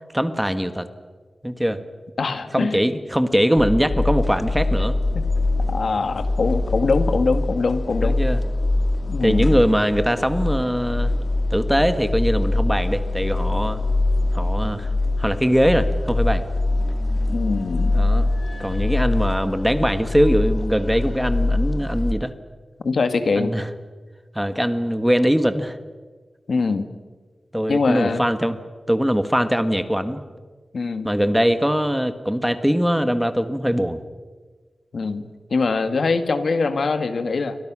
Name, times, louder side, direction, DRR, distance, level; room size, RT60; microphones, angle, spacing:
voice 1, 0.1-0.9 1.4-1.8 2.5-5.0 8.0-8.4 9.2-11.1 11.5-13.8 14.3-14.9 15.2-16.4 17.9-18.3 18.6-22.3 23.3-23.7 24.3-25.8 27.5-28.6 28.9-30.2 31.0-34.0, equal, 5° right, 10 dB, 1.5 m, -21 dB
voice 2, 2.2-2.8 5.7-8.2 9.1-9.5 17.3-17.9 22.8-23.5 26.5-26.9 27.7-28.2 30.7-31.1 34.9-37.6, left 4 dB, 70° left, 9 dB, 1.8 m, -23 dB
sound 1, 3.6-22.1, left 2 dB, 40° left, 2.2 m, -23 dB
29.5 x 24.0 x 6.2 m, 1.4 s
wide cardioid pair, 100°, 0 cm